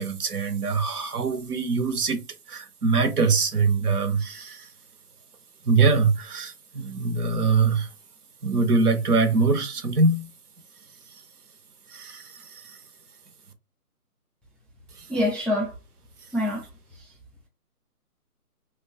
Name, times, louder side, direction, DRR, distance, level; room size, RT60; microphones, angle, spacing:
voice 1, 0.0-4.7 5.7-7.9 8.4-10.3 11.9-12.8 15.0-15.1, right 4 dB, 70° right, 0.7 m, -23 dB
voice 2, 15.1-15.8 16.3-17.1, left 1 dB, ahead, 0.4 m, -27 dB
2.4 x 2.2 x 2.3 m
hypercardioid pair, 175°, 47 cm